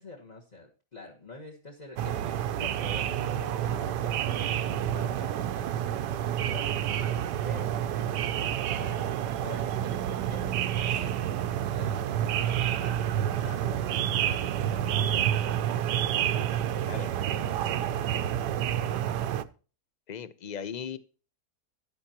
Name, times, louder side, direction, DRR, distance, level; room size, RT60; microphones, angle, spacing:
voice 1, 0.0-5.9 6.5-7.2 7.4-7.8 8.3-9.1 9.4-15.8 16.5-17.0 17.3-17.7 18.0-18.3, left 3 dB, 25° left, 1 dB, 1.4 m, -47 dB
sound 1, 2.0-19.4, right 10 dB, 85° right, 1.3 m, -29 dB
voice 2, 20.1-21.0, left 7 dB, 55° left, 14 dB, 0.4 m, -37 dB
14.0 x 10.0 x 2.9 m, 0.36 s
omnidirectional pair, 1.8 m